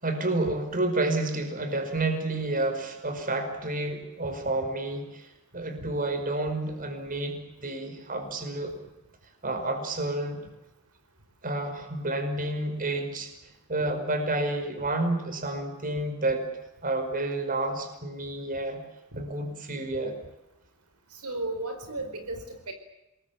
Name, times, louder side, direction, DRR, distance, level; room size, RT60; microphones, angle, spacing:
voice 1, 0.0-5.3 5.5-8.7 9.4-10.4 11.4-13.3 13.7-16.5 16.8-18.8 19.2-20.2, right 2 dB, 40° right, 7 dB, 5.1 m, -30 dB
voice 2, 21.2-22.7, right 2 dB, 80° right, 7 dB, 4.5 m, -34 dB
27.0 x 21.5 x 8.6 m, 0.93 s
head